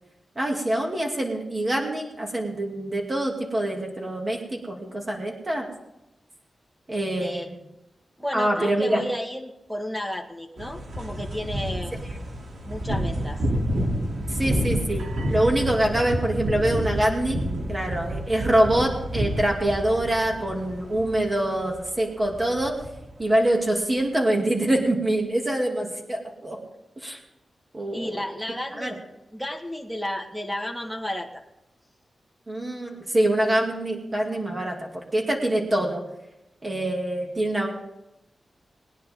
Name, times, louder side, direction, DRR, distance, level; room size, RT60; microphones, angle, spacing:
voice 1, 0.4-5.7 6.9-7.5 8.3-9.0 14.4-17.4 17.7-22.7 23.2-26.6 27.0-27.2 27.7-28.2 28.8-28.9 32.5-36.0 36.6-37.7, right 1 dB, 20° right, 0 dB, 2.5 m, -25 dB
voice 2, 8.2-11.9 12.7-13.4 27.9-29.0 29.3-31.3, equal, 5° right, 2 dB, 1.6 m, -32 dB
sound 1, 10.6-21.9 22.2-23.1, equal, 80° right, 3.0 m, -29 dB
21.0 x 10.0 x 3.7 m, 0.90 s
wide cardioid pair, 175°, 0 cm